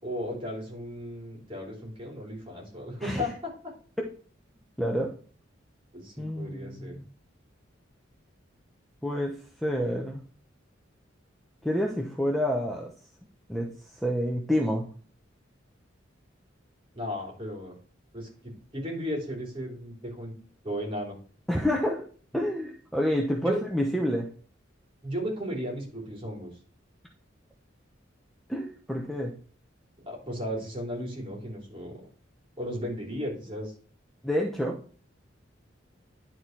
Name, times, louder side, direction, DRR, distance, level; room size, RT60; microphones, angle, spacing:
voice 1, 0.0-3.5 5.9-7.0 16.9-17.7 18.1-20.3 20.6-21.2 23.4-23.6 25.0-26.5 30.0-32.0 32.6-33.7, equal, 30° right, -2 dB, 3.5 m, -35 dB
voice 2, 4.8-5.1 6.2-7.1 9.0-10.2 11.6-12.9 13.5-13.7 14.0-14.8 21.5-22.1 22.3-24.3 28.5-29.3 34.2-34.8, equal, ahead, 0 dB, 0.9 m, -28 dB
11.0 x 4.2 x 4.6 m, 0.43 s
head